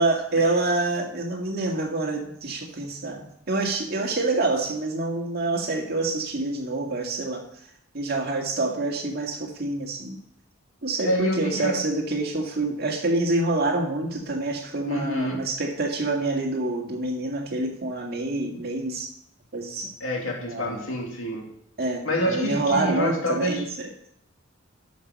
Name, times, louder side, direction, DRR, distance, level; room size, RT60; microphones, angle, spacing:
voice 1, 0.0-7.4 7.9-10.2 10.8-19.1 19.5-19.9 20.5-20.8 21.8-23.9, right 2 dB, 50° right, 1 dB, 2.0 m, -27 dB
voice 2, 11.0-11.8 14.9-15.5 20.0-21.5 22.0-23.6, equal, 90° left, 0 dB, 2.6 m, -27 dB
12.5 x 5.6 x 5.3 m, 0.75 s
head